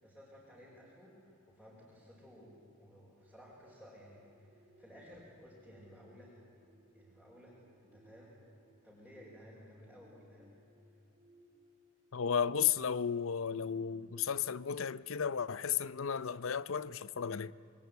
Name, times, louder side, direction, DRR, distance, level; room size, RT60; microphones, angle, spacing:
voice 1, 0.0-6.4 6.9-8.3 8.8-10.5, equal, 5° left, 5.8 m, -56 dB
sound 1, 3.2-13.0 13.5-13.7, equal, 35° right, 3.7 m, -67 dB
voice 2, 12.1-17.5, left 7 dB, 65° left, 0.6 m, -34 dB
27.5 x 22.5 x 9.4 m
head